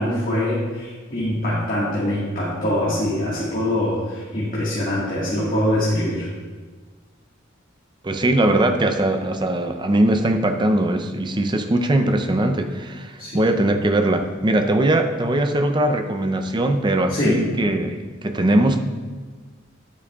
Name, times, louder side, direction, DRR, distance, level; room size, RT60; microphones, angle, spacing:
voice 1, 0.0-6.3 13.2-13.4 17.1-17.4, left 1 dB, 45° left, -8 dB, 1.6 m, -23 dB
voice 2, 8.0-18.8, right 1 dB, 25° right, 6 dB, 0.5 m, -20 dB
9.6 x 8.6 x 2.3 m, 1.4 s
head